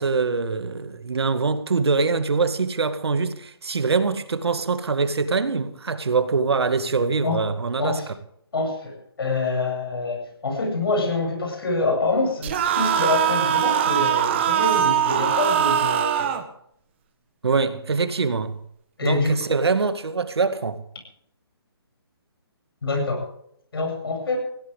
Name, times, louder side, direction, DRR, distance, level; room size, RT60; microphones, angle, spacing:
voice 1, 0.0-8.0 17.4-18.6 19.0-20.8, right 4 dB, 80° right, 2.1 m, -23 dB
voice 2, 8.5-16.3 19.0-19.4 22.8-23.3 23.7-24.4, left 3 dB, 65° left, 8.0 m, -26 dB
sound 1, 12.4-16.4, right 10 dB, 25° right, 1.4 m, -21 dB
19.5 x 16.5 x 3.7 m
hypercardioid pair, 165°, 13 cm